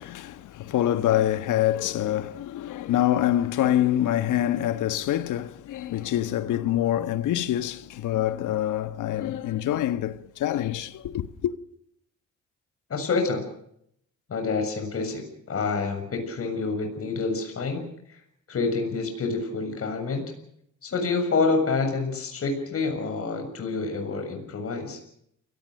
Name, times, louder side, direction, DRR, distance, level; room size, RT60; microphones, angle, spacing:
voice 1, 0.0-11.5, left 12 dB, 80° left, 1.4 m, -25 dB
voice 2, 12.9-13.5 14.3-18.2 18.5-20.3 20.8-25.0, left 4 dB, 50° left, 7.2 m, -28 dB
29.5 x 18.5 x 6.6 m
cardioid pair, 90°, 30 cm